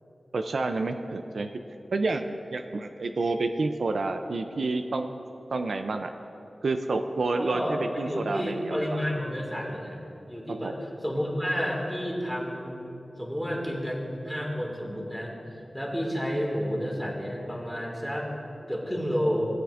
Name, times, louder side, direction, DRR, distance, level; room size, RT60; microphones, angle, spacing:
voice 1, 0.3-1.5 1.9-5.2 5.5-6.1 6.6-8.9 10.6-10.7, right 3 dB, 75° right, 6 dB, 0.4 m, -29 dB
voice 2, 7.3-12.8 13.2-15.3 15.7-18.3 18.7-19.5, equal, ahead, -2 dB, 1.9 m, -30 dB
18.0 x 8.6 x 2.5 m, 2.9 s
wide cardioid pair, 100°, 0 cm